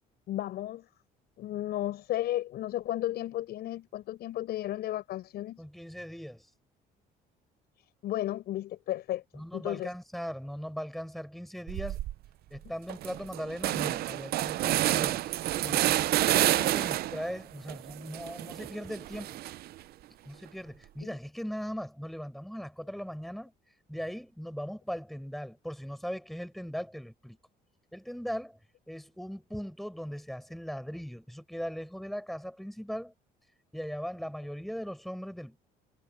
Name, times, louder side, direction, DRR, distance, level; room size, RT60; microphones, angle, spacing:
voice 1, 0.3-0.9 1.4-5.6 8.0-9.9 21.0-21.2, left 14 dB, 70° left, 6.6 m, -34 dB
voice 2, 5.6-6.5 9.3-12.0 12.5-15.2 15.6-16.1 16.4-19.4 20.2-23.5 23.9-27.4 27.9-28.6 28.9-33.1 33.7-35.6, equal, ahead, 7.3 m, -39 dB
sound 1, 11.7-12.1 12.6-12.7 12.9-17.3 17.7-19.8, right 14 dB, 65° right, 0.6 m, -29 dB
cardioid pair, 110°, 17 cm